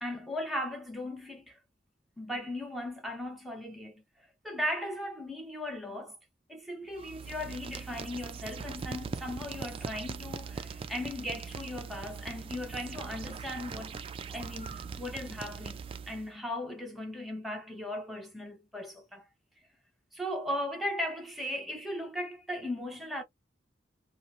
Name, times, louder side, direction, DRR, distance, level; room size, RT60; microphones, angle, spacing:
voice 1, 0.0-1.6 2.2-4.0 4.4-6.2 6.5-14.0 14.3-19.3 20.1-23.2, left 1 dB, ahead, 0.8 m, -37 dB
sound 1, 6.9-16.3, right 5 dB, 30° right, 0.3 m, -41 dB
2.8 x 2.0 x 2.4 m
head